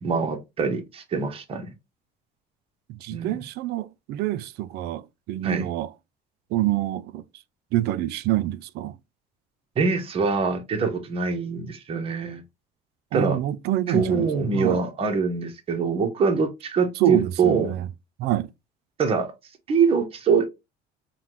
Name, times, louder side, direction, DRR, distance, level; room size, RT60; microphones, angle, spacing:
voice 1, 0.0-1.7 3.1-3.4 5.4-5.7 9.8-12.4 13.1-13.4 13.9-17.7 19.0-19.3 19.7-20.5, right 5 dB, 30° right, 0.8 m, -24 dB
voice 2, 2.9-5.9 6.5-7.2 7.7-8.9 13.1-14.3 14.5-14.8 17.0-17.9 18.2-18.5, right 14 dB, 60° right, 0.4 m, -26 dB
5.6 x 2.2 x 3.0 m
cardioid pair, 155°, 19 cm